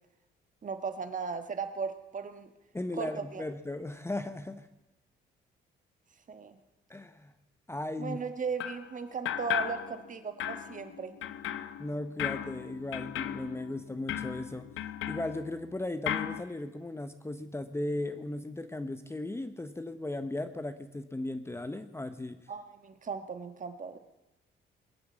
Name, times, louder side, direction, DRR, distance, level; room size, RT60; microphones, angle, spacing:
voice 1, 0.6-2.5 3.0-3.4 6.3-6.6 8.0-11.2 22.5-24.0, right 5 dB, 40° right, 8 dB, 1.5 m, -37 dB
voice 2, 2.7-4.7 6.9-7.3 7.7-8.2 11.8-14.7 15.1-22.4, left 2 dB, 15° left, 10 dB, 0.9 m, -36 dB
sound 1, 8.6-8.9 9.2-10.1 10.4-15.7 16.1-16.4, left 11 dB, 85° left, 0.8 m, -36 dB
22.5 x 8.0 x 7.2 m, 0.99 s
cardioid pair, 90°, 20 cm